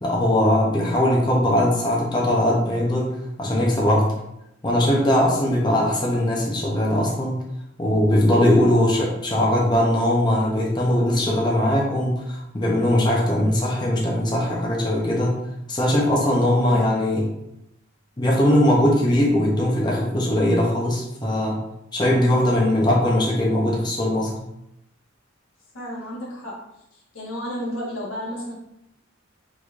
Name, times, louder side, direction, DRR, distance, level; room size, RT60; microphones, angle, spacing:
voice 1, 0.0-4.1 4.6-7.4 7.8-15.4 15.7-17.3 18.2-21.6 21.9-24.4, left 1 dB, 20° left, -4 dB, 0.6 m, -20 dB
voice 2, 16.5-16.8 25.7-26.5 26.9-28.5, equal, 90° left, -4 dB, 1.3 m, -33 dB
3.9 x 3.1 x 2.4 m, 0.83 s
head